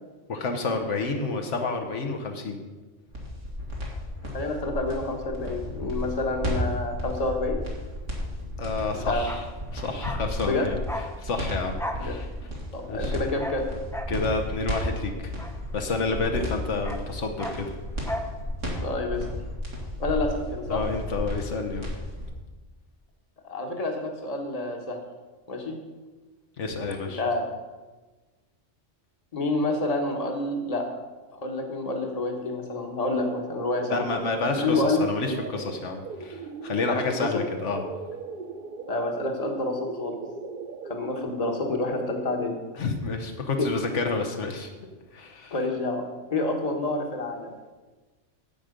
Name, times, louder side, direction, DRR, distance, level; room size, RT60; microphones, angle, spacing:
voice 1, 0.3-2.6 8.6-9.4 9.7-10.8 11.2-12.3 12.9-13.1 14.1-15.3 15.7-17.7 20.7-21.9 26.6-27.2 33.9-37.8 42.8-44.7 45.1-45.5, left 3 dB, 75° left, 4 dB, 1.3 m, -29 dB
sound 1, 3.1-22.3, equal, 90° right, 2.6 m, -33 dB
voice 2, 4.3-7.6 9.1-9.2 10.4-10.7 12.0-12.1 12.7-13.7 18.8-19.2 20.0-20.8 23.4-25.0 25.5-25.8 27.0-27.4 29.3-30.9 31.3-34.0 34.6-35.1 36.9-37.3 38.9-40.1 40.8-42.5 45.5-46.0 46.3-47.5, left 2 dB, 30° left, 3 dB, 1.2 m, -28 dB
Bark, 9.1-16.2 16.5-18.4 18.6-18.8, equal, 5° left, 0.4 m, -38 dB
sound 2, 32.8-42.8, right 5 dB, 55° right, 0.7 m, -40 dB
10.5 x 7.6 x 5.1 m, 1.3 s
omnidirectional pair, 1.2 m